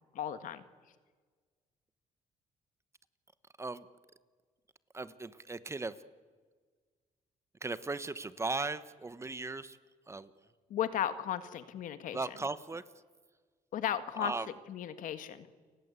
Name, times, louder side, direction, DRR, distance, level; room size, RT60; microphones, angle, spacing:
voice 1, 0.1-0.6 10.7-12.2 13.7-14.3 14.7-15.5, left 10 dB, 75° left, 11 dB, 1.8 m, -35 dB
voice 2, 4.9-5.9 7.6-9.8 10.1-10.3 12.1-12.8 14.2-14.5, right 3 dB, 20° right, 14 dB, 1.2 m, -37 dB
29.5 x 20.0 x 8.3 m, 1.5 s
cardioid pair, 105°, 14 cm